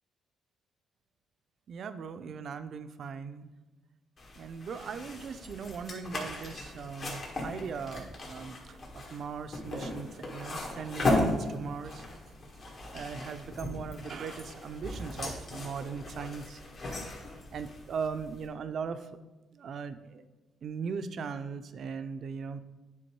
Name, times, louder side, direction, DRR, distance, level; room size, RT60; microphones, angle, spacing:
voice 1, 1.7-3.5 4.4-12.0 12.7-16.6 16.9-17.0 17.5-19.1 19.5-20.2 20.6-22.6, right 6 dB, 60° right, 11 dB, 0.4 m, -39 dB
sound 1, 4.2-18.5, left 2 dB, 50° left, 1.7 m, -37 dB
9.2 x 3.5 x 4.6 m, 1.2 s
cardioid pair, 90°, 0 cm